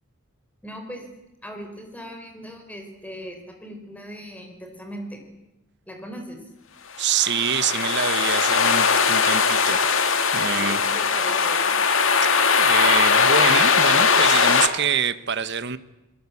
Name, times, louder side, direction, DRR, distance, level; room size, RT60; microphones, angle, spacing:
voice 1, 0.6-1.1 1.4-5.3 5.9-6.4 10.6-11.8, equal, 5° left, 4 dB, 4.3 m, -38 dB
sound 1, 7.0-14.7, left 5 dB, 60° left, 2.0 m, -19 dB
voice 2, 7.0-9.9 10.3-10.8 12.6-15.8, right 7 dB, 50° right, 13 dB, 1.1 m, -26 dB
26.5 x 21.0 x 8.5 m, 0.96 s
head